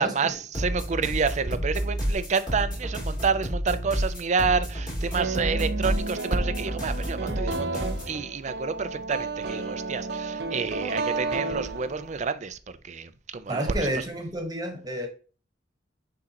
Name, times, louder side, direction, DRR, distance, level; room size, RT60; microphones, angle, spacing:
voice 1, 0.0-12.6 12.8-14.0, right 5 dB, 40° right, 0.5 m, -29 dB
sound 1, 0.5-8.2, equal, 25° left, 2.8 m, -30 dB
sound 2, 5.2-12.3, right 3 dB, 65° right, 0.9 m, -32 dB
voice 2, 13.5-15.1, right 1 dB, 20° right, 1.3 m, -30 dB
9.6 x 3.8 x 2.9 m
head